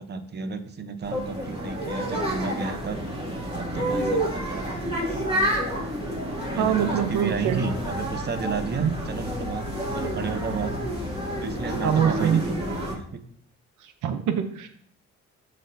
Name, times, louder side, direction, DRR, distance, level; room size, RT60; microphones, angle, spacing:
voice 1, 0.0-3.0 3.5-4.9 6.5-10.8 11.4-13.2, right 5 dB, 35° right, 9 dB, 0.8 m, -32 dB
sound 1, 1.0-12.9, equal, 20° right, 2.4 m, -29 dB
voice 2, 6.6-7.6 8.8-9.0 11.8-12.4 14.0-14.7, right 8 dB, 80° right, 8 dB, 0.8 m, -24 dB
12.5 x 4.3 x 2.7 m, 0.62 s
cardioid pair, 90°, 30 cm